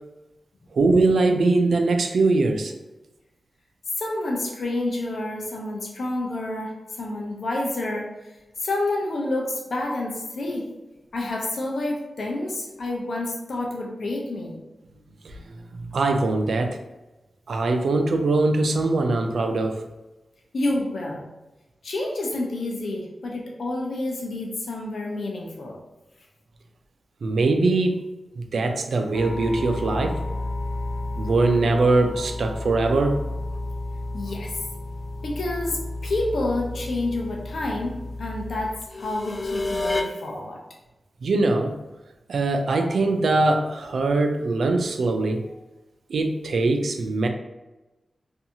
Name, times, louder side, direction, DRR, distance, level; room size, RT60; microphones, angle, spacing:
voice 1, 0.7-2.7 15.2-15.4 15.7-16.8 17.5-19.8 27.2-28.1 28.4-30.2 31.2-33.2 41.2-41.8 42.3-45.5 46.1-47.3, right 3 dB, 80° right, 5 dB, 0.3 m, -22 dB
voice 2, 4.0-8.3 8.6-10.6 11.1-14.6 20.5-21.2 21.8-25.8 34.1-34.5 35.2-40.6, left 2 dB, 75° left, -1 dB, 0.6 m, -29 dB
sound 1, 29.1-40.0, left 2 dB, 40° left, 0.3 m, -31 dB
2.6 x 2.3 x 2.7 m, 1.0 s
wide cardioid pair, 115°, 0 cm